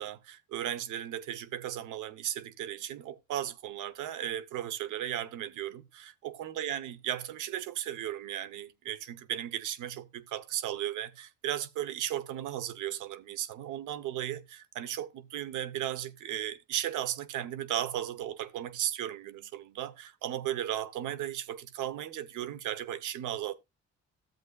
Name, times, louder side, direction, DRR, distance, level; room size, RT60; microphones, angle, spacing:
voice 1, 0.0-23.5, right 11 dB, 85° right, 0.9 m, -36 dB
13.5 x 7.7 x 2.3 m
cardioid pair, 90°, 30 cm